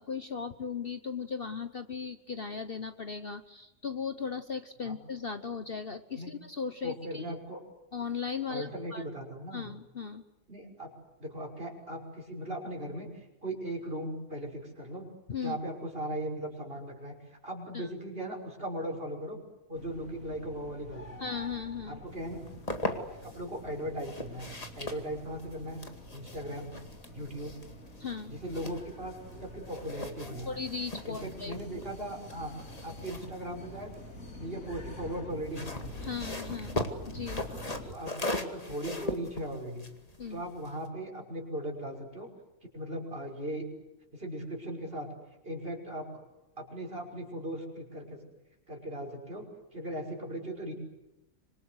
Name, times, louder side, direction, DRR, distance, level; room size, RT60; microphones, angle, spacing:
voice 1, 0.0-7.4 7.9-9.0 9.5-10.2 15.3-15.6 17.7-17.9 21.2-22.0 28.0-28.3 30.5-31.6 36.0-37.4 40.2-40.4, left 5 dB, 45° left, 9 dB, 1.2 m, -37 dB
voice 2, 6.8-7.6 8.5-9.7 10.5-10.9 11.2-15.1 15.4-19.4 19.7-21.2 21.9-22.5 22.8-25.8 26.1-26.8 27.1-27.5 28.2-30.5 31.1-32.5 32.8-33.9 34.4-35.9 37.8-39.9 40.3-42.3 42.7-43.6 44.1-45.1 45.4-46.2 46.6-48.2 48.7-50.7, right 1 dB, 40° right, 1 dB, 6.1 m, -38 dB
sound 1, 19.7-37.9, left 1 dB, 70° left, 3.6 m, -47 dB
sound 2, 22.3-23.4 24.0-29.4 29.6-34.3 35.3-40.9, left 1 dB, 25° left, 2.2 m, -39 dB
26.0 x 25.5 x 8.0 m, 0.96 s
omnidirectional pair, 1.5 m